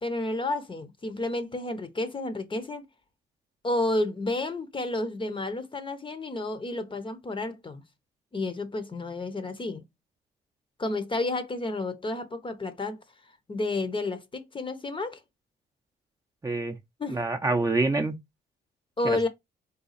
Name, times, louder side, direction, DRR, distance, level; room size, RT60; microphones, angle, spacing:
voice 1, 0.0-2.8 3.6-7.8 8.3-9.8 10.8-13.0 13.5-15.2 17.0-17.2 19.0-19.3, left 2 dB, 25° left, 0.7 m, -31 dB
voice 2, 16.4-16.8 17.1-18.2 19.0-19.3, right 3 dB, 15° right, 0.6 m, -26 dB
4.1 x 2.3 x 4.0 m
cardioid pair, 90°, 20 cm